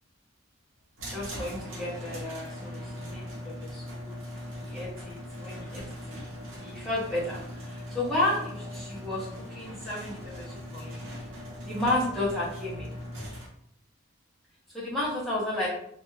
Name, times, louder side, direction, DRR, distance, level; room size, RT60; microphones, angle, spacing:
sound 1, 1.0-13.5, equal, 65° right, 0.7 m, -40 dB
voice 1, 1.1-4.2 4.6-6.3 6.6-11.0 11.6-13.0 14.7-15.7, left 1 dB, ahead, -7 dB, 0.6 m, -32 dB
2.2 x 2.0 x 3.0 m, 0.71 s
head